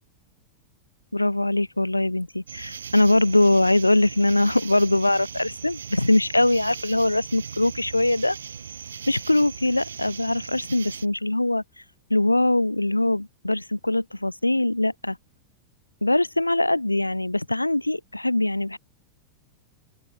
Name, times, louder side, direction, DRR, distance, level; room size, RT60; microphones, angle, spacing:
voice 1, 1.1-8.4 9.1-11.6 12.1-15.2 16.0-18.8, left 1 dB, 85° left, 1.0 m, -22 dB
sound 1, 2.5-11.1, right 7 dB, 70° right, 1.5 m, -39 dB
open air
figure-of-eight pair, 90°, 0 cm